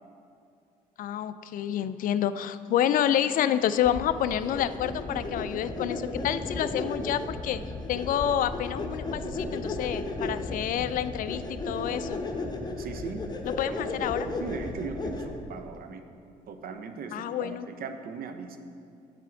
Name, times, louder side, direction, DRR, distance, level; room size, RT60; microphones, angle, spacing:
voice 1, 1.0-7.6 7.9-12.2 13.6-14.3 17.1-17.7, left 10 dB, 40° left, 13 dB, 0.4 m, -28 dB
sound 1, 3.8-15.5, left 2 dB, 20° left, 0.9 m, -34 dB
voice 2, 12.8-13.3 13.5-13.9 14.3-16.0 16.5-18.6, right 5 dB, 45° right, 8 dB, 0.7 m, -38 dB
9.1 x 7.3 x 3.6 m, 2.5 s
figure-of-eight pair, 50°, 21 cm